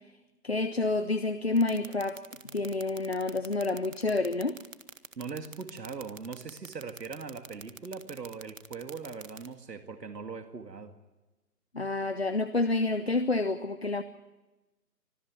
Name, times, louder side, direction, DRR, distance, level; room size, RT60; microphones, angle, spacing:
voice 1, 0.4-2.2 2.5-4.6 11.7-14.0, left 3 dB, 40° left, 10 dB, 0.7 m, -28 dB
sound 1, 1.6-9.5, right 5 dB, 55° right, 1.5 m, -45 dB
voice 2, 5.2-11.0, right 5 dB, 80° right, 7 dB, 2.2 m, -40 dB
25.0 x 14.0 x 9.6 m, 1.1 s
hypercardioid pair, 175°, 48 cm